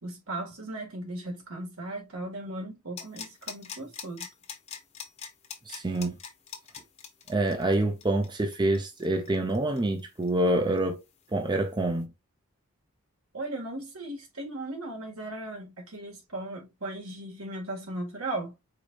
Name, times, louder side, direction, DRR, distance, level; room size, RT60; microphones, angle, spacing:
voice 1, 0.0-4.3 13.3-18.5, right 2 dB, 70° right, 2.0 m, -37 dB
sound 1, 3.0-10.5 10.8-10.9, left 6 dB, 30° left, 0.9 m, -42 dB
voice 2, 5.7-6.2 7.3-11.0 11.3-12.1, right 1 dB, 20° right, 0.6 m, -26 dB
4.9 x 4.1 x 2.5 m
head